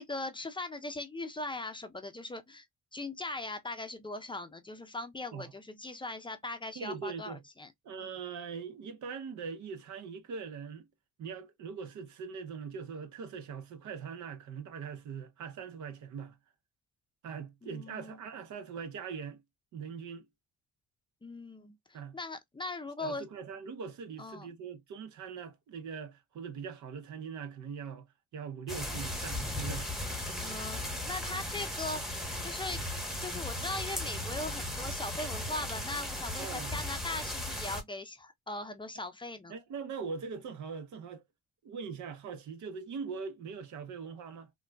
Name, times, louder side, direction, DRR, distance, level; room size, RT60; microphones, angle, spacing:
voice 1, 0.0-2.7 2.9-7.7 8.0-8.1 17.6-18.2 21.2-23.2 24.2-24.5 30.4-32.8 33.2-39.5, left 2 dB, 15° left, 0.5 m, -40 dB
voice 2, 6.8-7.4 7.8-10.8 11.2-16.4 17.2-19.4 19.7-20.2 21.9-22.2 23.0-29.9 36.4-36.8 39.5-41.2 41.6-44.5, right 6 dB, 70° right, 0.8 m, -41 dB
sound 1, 28.7-37.8, left 1 dB, ahead, 1.0 m, -37 dB
3.5 x 2.2 x 2.2 m
cardioid pair, 90°, 30 cm